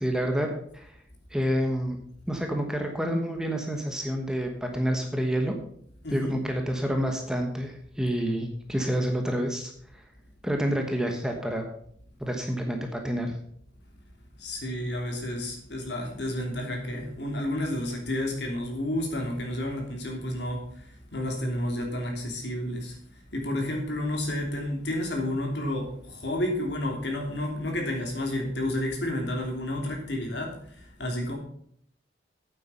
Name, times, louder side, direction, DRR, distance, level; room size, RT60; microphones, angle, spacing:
voice 1, 0.0-1.0 1.3-2.0 2.3-5.5 6.1-9.7 10.4-11.6 12.2-13.3, equal, 5° right, 3 dB, 1.2 m, -28 dB
voice 2, 6.0-6.4 14.4-23.0 23.3-31.3, left 1 dB, 65° left, 1 dB, 2.9 m, -31 dB
8.8 x 8.4 x 5.5 m, 0.64 s
head